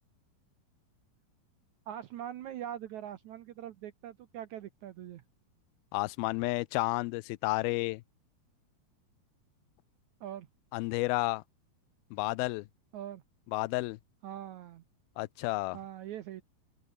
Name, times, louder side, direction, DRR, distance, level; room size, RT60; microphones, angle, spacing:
voice 1, 1.9-5.2 10.2-10.5 12.9-13.2 14.2-14.8 15.7-16.4, right 11 dB, 85° right, 1.7 m, -42 dB
voice 2, 5.9-8.0 10.7-11.4 12.1-12.7 13.5-14.0 15.2-15.8, left 22 dB, 80° left, 2.3 m, -31 dB
open air
omnidirectional pair, 4.8 m